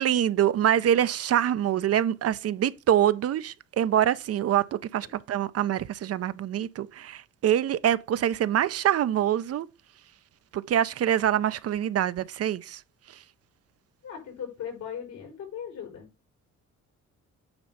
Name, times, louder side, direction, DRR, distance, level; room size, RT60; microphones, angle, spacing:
voice 1, 0.0-9.7 10.5-12.8 13.1-13.2, right 10 dB, 55° right, 0.5 m, -25 dB
voice 2, 14.0-16.1, left 8 dB, 85° left, 5.2 m, -38 dB
8.8 x 3.2 x 5.4 m
cardioid pair, 90°, 30 cm